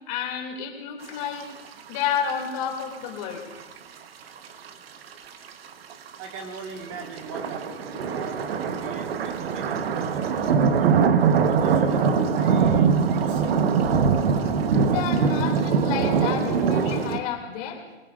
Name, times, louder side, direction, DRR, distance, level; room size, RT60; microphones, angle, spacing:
voice 1, 0.1-1.5 1.9-3.4 14.4-17.8, left 8 dB, 30° left, 1 dB, 2.5 m, -30 dB
sound 1, 1.9-2.0 2.3-2.4 3.0-3.6 4.4-4.5 4.6-4.7 5.1-6.2 6.6-17.2, right 6 dB, 65° right, 1.1 m, -22 dB
voice 2, 6.2-11.1 11.4-13.6, right 3 dB, 30° right, 3 dB, 1.6 m, -40 dB
26.5 x 19.0 x 2.5 m, 1.1 s
hypercardioid pair, 160°, 33 cm